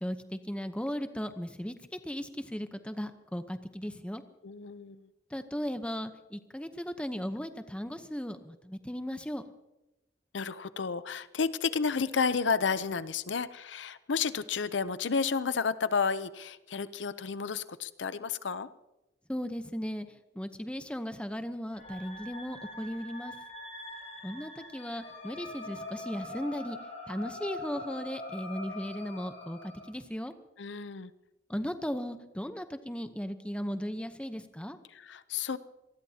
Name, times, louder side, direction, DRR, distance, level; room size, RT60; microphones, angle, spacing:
voice 1, 0.0-4.2 5.3-9.4 19.3-20.1 20.3-23.3 24.2-26.8 27.1-30.3 31.5-34.8, equal, 5° left, 9 dB, 0.8 m, -36 dB
voice 2, 4.4-5.1 10.3-18.7 30.6-31.1 34.9-35.6, left 5 dB, 80° left, 14 dB, 0.6 m, -31 dB
sound 1, 21.7-29.8, left 2 dB, 40° left, 6.1 m, -43 dB
26.0 x 19.5 x 2.9 m, 0.99 s
head